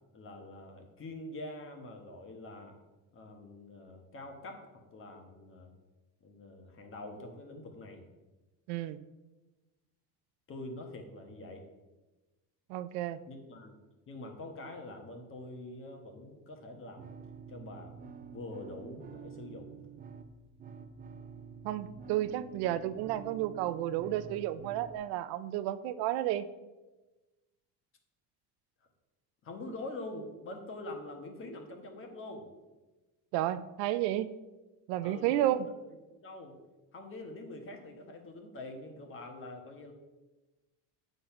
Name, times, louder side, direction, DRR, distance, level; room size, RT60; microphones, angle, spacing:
voice 1, 0.1-2.8 3.1-5.7 6.2-8.0 10.5-11.6 13.3-13.8 14.1-17.1 17.5-17.9 18.3-19.8 29.4-32.5 35.0-35.8 36.1-36.6 36.9-39.9, left 2 dB, 35° left, 4 dB, 1.3 m, -45 dB
voice 2, 12.7-13.2 21.6-26.5 33.3-34.3 34.9-35.7, right 13 dB, 80° right, 13 dB, 0.6 m, -32 dB
sound 1, 17.0-25.0, right 6 dB, 25° right, 0.5 m, -49 dB
8.6 x 4.0 x 5.8 m, 1.1 s
cardioid pair, 145°, 38 cm